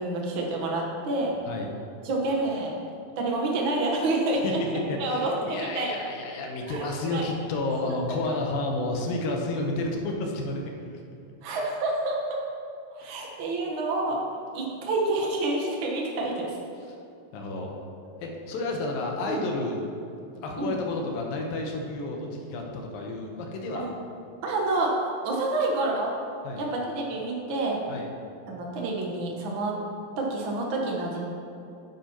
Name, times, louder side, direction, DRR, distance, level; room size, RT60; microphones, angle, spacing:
voice 1, 0.0-1.3 2.0-2.7 3.2-6.0 6.7-7.2 11.4-12.4 12.9-14.2 14.5-16.6 19.3-19.4 20.6-20.7 23.7-23.9 24.4-24.9 25.2-26.1 26.6-27.8 28.5-29.8 30.2-31.2, right 2 dB, 65° right, -1 dB, 1.2 m, -28 dB
voice 2, 4.9-11.0 13.0-13.2 17.3-17.7 18.2-19.8 20.4-23.9 26.4-26.6 27.9-28.1, left 2 dB, 80° left, 1 dB, 2.7 m, -31 dB
9.8 x 9.2 x 3.0 m, 2.6 s
omnidirectional pair, 4.1 m